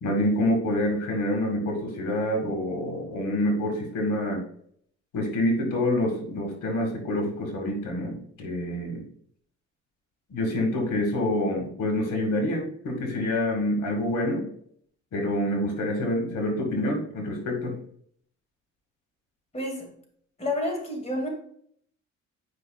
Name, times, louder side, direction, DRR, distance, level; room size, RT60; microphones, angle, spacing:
voice 1, 0.0-4.4 5.1-9.0 10.3-14.4 15.1-17.8, left 1 dB, 80° left, 1 dB, 2.1 m, -27 dB
voice 2, 19.5-19.9 20.4-21.3, left 1 dB, 20° left, 1 dB, 2.3 m, -29 dB
9.7 x 5.5 x 2.4 m, 0.64 s
cardioid pair, 90°, 30 cm